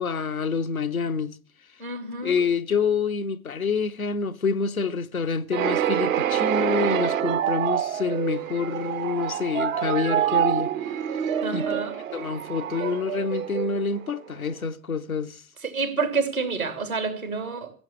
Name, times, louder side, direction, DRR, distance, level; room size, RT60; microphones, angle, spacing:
voice 1, 0.0-1.4 2.2-10.7 11.1-11.2 11.5-11.7 12.1-15.4, left 5 dB, 85° left, 0.8 m, -27 dB
voice 2, 1.8-2.5 11.4-12.0 15.6-17.7, right 4 dB, 85° right, 2.9 m, -28 dB
sound 1, 5.5-14.3, right 10 dB, 70° right, 1.1 m, -26 dB
16.0 x 7.8 x 8.5 m
figure-of-eight pair, 70°, 41 cm